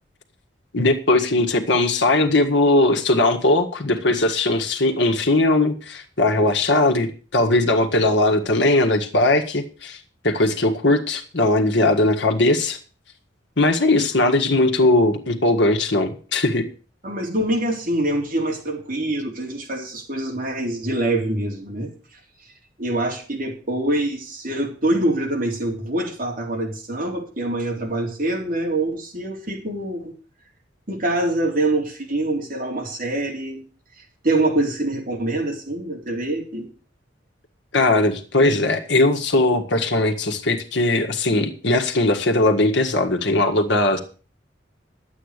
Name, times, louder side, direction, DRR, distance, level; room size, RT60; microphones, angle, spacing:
voice 1, 0.7-10.0 10.2-12.8 13.6-16.7 37.7-44.0, left 2 dB, 65° left, 4 dB, 1.7 m, -19 dB
voice 2, 17.0-21.9 22.8-30.1 30.9-33.6 34.2-36.7, right 1 dB, 45° right, 0 dB, 3.7 m, -25 dB
11.5 x 8.6 x 6.6 m, 0.38 s
head